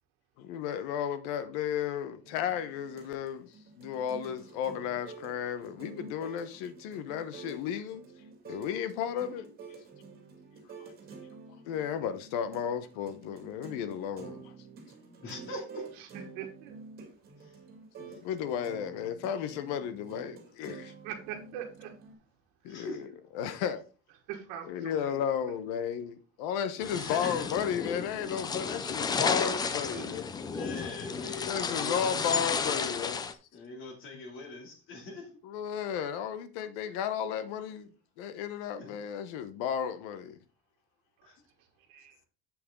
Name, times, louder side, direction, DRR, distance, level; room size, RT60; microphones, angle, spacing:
voice 1, 0.4-3.5 3.8-8.0 8.5-9.5 10.8-10.9 11.6-14.5 18.0-20.9 22.6-22.9 23.3-23.8 24.6-30.3 31.4-33.3 35.4-37.9 38.2-40.4, left 8 dB, 75° left, 1.2 m, -34 dB
sound 1, 2.2-22.1, right 5 dB, 30° right, 2.1 m, -49 dB
voice 2, 15.2-15.9 17.4-17.6 18.1-18.2 22.7-23.0 26.8-27.5 30.3-32.3 33.5-35.3 38.6-39.0 41.2-41.4, left 2 dB, 40° left, 2.7 m, -42 dB
voice 3, 16.3-16.8 21.0-21.9 22.7-22.8 24.3-25.2 29.9-30.2 41.9-42.3, right 10 dB, 75° right, 1.6 m, -42 dB
sound 2, 26.8-33.3, left 5 dB, 15° left, 0.3 m, -33 dB
7.7 x 7.1 x 3.7 m
cardioid pair, 175°, 30 cm